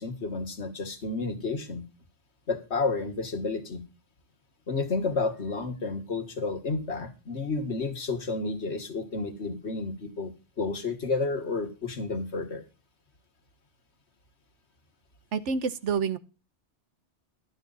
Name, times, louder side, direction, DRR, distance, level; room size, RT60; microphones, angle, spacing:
voice 1, 0.0-1.9 2.5-3.8 4.7-10.3 10.6-12.6, left 3 dB, 65° left, 7 dB, 1.9 m, -31 dB
voice 2, 15.3-16.2, right 5 dB, 80° right, 15 dB, 1.2 m, -28 dB
12.0 x 8.8 x 4.0 m, 0.32 s
omnidirectional pair, 1.2 m